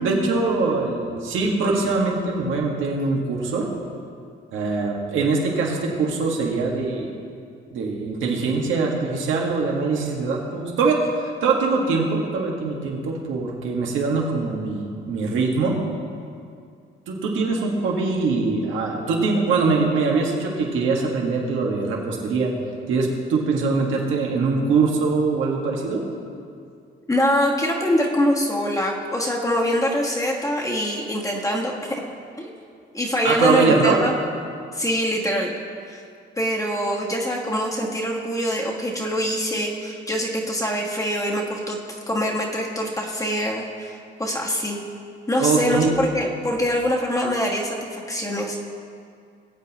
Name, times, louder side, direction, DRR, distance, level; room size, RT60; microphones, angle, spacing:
voice 1, 0.0-3.7 4.5-7.1 7.7-15.8 17.1-22.5 22.9-26.1 33.2-34.0 45.4-46.0, right 4 dB, 80° right, -1 dB, 1.8 m, -22 dB
voice 2, 27.1-32.0 32.4-32.5 32.9-34.1 34.7-35.5 35.9-36.0 36.4-41.8 42.1-44.8 45.3-48.6, equal, 15° left, -2 dB, 1.5 m, -24 dB
19.5 x 8.3 x 3.0 m, 2.3 s
cardioid pair, 90°, 20 cm